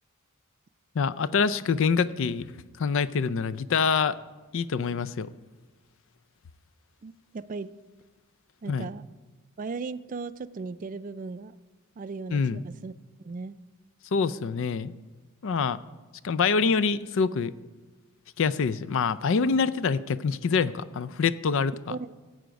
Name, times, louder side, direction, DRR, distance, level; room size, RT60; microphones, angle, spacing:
voice 1, 0.9-2.5 2.8-4.2 4.5-5.3 8.7-8.9 12.3-12.6 14.1-14.9 15.4-15.8 16.2-17.5 18.4-22.0, left 5 dB, 60° left, 16 dB, 0.4 m, -25 dB
voice 2, 7.0-7.7 8.6-9.0 9.6-11.6 12.0-12.9 13.2-13.6 21.9-22.1, right 4 dB, 40° right, 14 dB, 0.3 m, -37 dB
16.0 x 7.8 x 5.2 m, 1.3 s
head